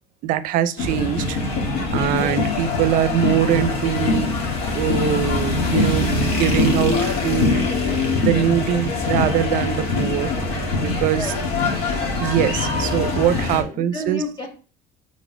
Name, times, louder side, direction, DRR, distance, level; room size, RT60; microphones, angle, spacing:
voice 1, 0.2-1.4 1.9-4.4 4.7-7.7 8.2-10.3 10.8-11.3 12.2-14.2, right 11 dB, 55° right, 0.6 m, -22 dB
sound 1, 0.8-13.6, left 3 dB, 70° left, 2.0 m, -23 dB
voice 2, 11.0-11.4 13.6-14.5, left 2 dB, 30° left, 2.3 m, -31 dB
5.4 x 3.9 x 4.9 m
cardioid pair, 170°, 17 cm